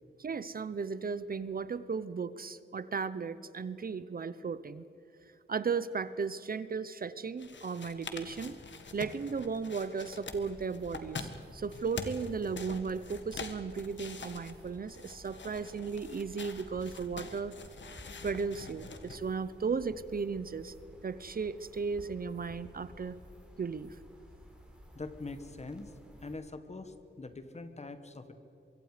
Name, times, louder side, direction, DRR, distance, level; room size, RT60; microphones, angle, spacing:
voice 1, 0.2-4.8 5.5-8.6 8.9-17.5 18.2-20.7 21.0-23.2 23.6-24.0, right 5 dB, 45° right, 14 dB, 0.7 m, -35 dB
sound 1, 7.4-19.2, left 4 dB, 70° left, 1.7 m, -45 dB
sound 2, 10.3-26.4, equal, 5° right, 3.7 m, -54 dB
voice 2, 24.9-25.9 26.2-28.3, left 3 dB, 35° left, 9 dB, 1.5 m, -43 dB
24.0 x 24.0 x 5.0 m, 2.8 s
wide cardioid pair, 140°, 20 cm